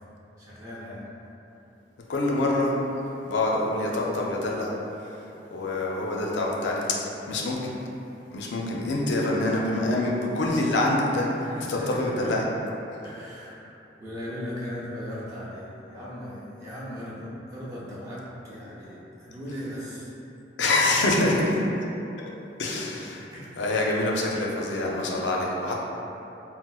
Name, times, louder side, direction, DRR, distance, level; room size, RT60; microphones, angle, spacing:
voice 1, 0.4-1.0 9.5-9.6 11.4-12.4 13.0-13.7 14.0-20.1 21.2-21.5 23.3-23.6, equal, 15° right, -10 dB, 0.5 m, -37 dB
voice 2, 2.1-2.8 3.3-4.7 5.5-7.0 7.3-7.7 8.3-11.3 11.7-12.4 20.6-21.3 22.6-23.2 23.6-25.7, left 2 dB, 80° left, -2 dB, 0.4 m, -25 dB
4.1 x 2.0 x 2.3 m, 2.9 s
head